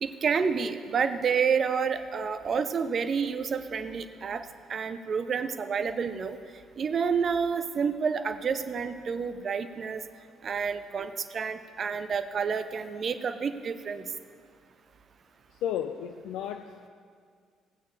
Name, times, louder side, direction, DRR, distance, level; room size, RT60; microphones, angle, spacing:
voice 1, 0.0-6.4 6.8-10.0 10.4-14.1, right 6 dB, 45° right, 11 dB, 0.5 m, -29 dB
voice 2, 15.5-16.9, left 9 dB, 60° left, 6 dB, 0.3 m, -33 dB
16.0 x 8.5 x 2.8 m, 2.1 s
figure-of-eight pair, 45°, 0 cm